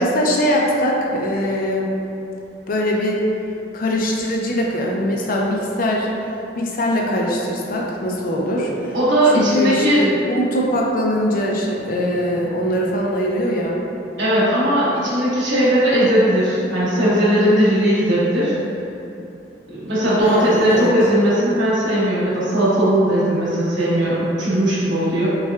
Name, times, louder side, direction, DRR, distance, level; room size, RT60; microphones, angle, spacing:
voice 1, 0.0-1.9 2.7-3.2 3.7-6.1 6.6-8.7 9.3-13.8 20.2-20.9, equal, 50° left, -1 dB, 0.5 m, -21 dB
voice 2, 8.9-10.0 14.2-18.5 19.7-25.3, equal, 80° right, -10 dB, 1.2 m, -18 dB
5.5 x 2.3 x 2.3 m, 2.8 s
head